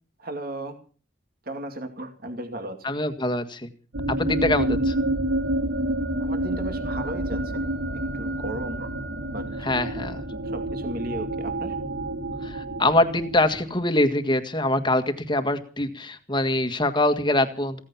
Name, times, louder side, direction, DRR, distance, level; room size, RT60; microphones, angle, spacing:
voice 1, 0.2-0.8 1.4-2.8 6.2-7.6 8.1-8.9 9.3-9.7 10.3-11.8, right 1 dB, 50° right, 6 dB, 2.5 m, -35 dB
voice 2, 2.8-3.7 4.1-4.9 9.6-10.3 12.4-17.8, left 1 dB, 25° left, 8 dB, 1.8 m, -24 dB
sound 1, 3.9-13.8, right 1 dB, 85° right, 2.8 m, -28 dB
16.5 x 15.5 x 5.7 m, 0.39 s
head